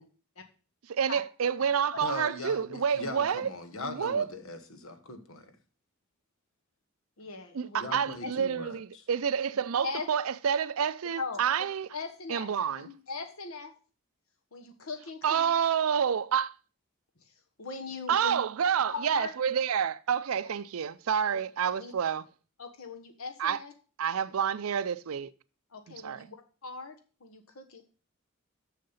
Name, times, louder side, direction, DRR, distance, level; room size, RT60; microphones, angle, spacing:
voice 1, 1.0-3.5 3.8-4.3 7.5-11.9 12.3-12.9 15.2-16.5 18.1-22.3 23.4-23.6 24.0-25.3 25.9-26.3, right 7 dB, 80° right, 0.5 m, -28 dB
voice 2, 2.0-5.6 7.8-9.0, left 2 dB, 70° left, 1.2 m, -40 dB
voice 3, 7.2-7.9 8.2-8.3 9.8-10.1 11.2-11.4 11.9-13.7 14.5-15.5 17.6-18.4 18.9-19.3 21.8-21.9 22.6-23.7 25.7-26.4 26.6-26.9 27.2-27.8, left 4 dB, 90° left, 1.3 m, -39 dB
6.6 x 6.5 x 5.5 m
head